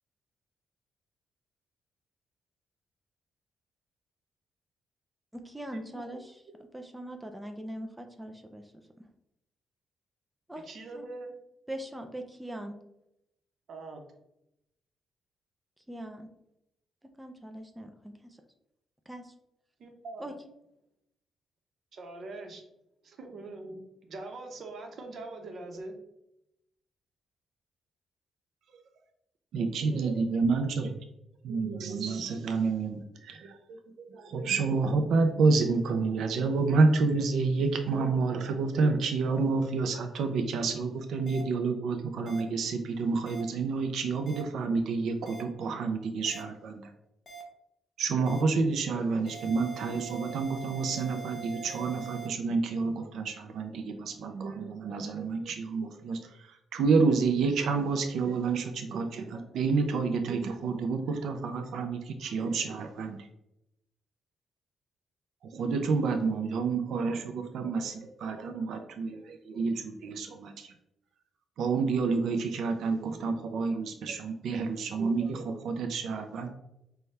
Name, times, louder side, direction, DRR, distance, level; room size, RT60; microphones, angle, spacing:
voice 1, 5.3-8.7 9.0-9.1 10.5-10.7 10.9-11.1 11.7-12.8 15.9-16.3 17.2-18.4 19.1-19.3 20.2-20.3, right 1 dB, 5° right, 4 dB, 0.4 m, -41 dB
voice 2, 10.6-11.3 13.7-14.0 19.8-20.3 21.9-22.6 23.0-23.8 24.1-26.0, right 2 dB, 55° right, 3 dB, 0.8 m, -42 dB
voice 3, 29.5-30.9 31.4-46.9 48.0-63.3 65.4-70.7 71.6-76.5, right 4 dB, 75° right, 6 dB, 0.4 m, -29 dB
sound 1, 41.3-41.4 42.3-42.4 43.3-43.4 44.3-44.4 45.3-45.4 46.3-46.4 47.3-47.4 48.3-48.4 49.3-52.3, right 7 dB, 30° left, 0.9 m, -43 dB
5.5 x 2.2 x 3.2 m, 0.83 s
cardioid pair, 125°, 0 cm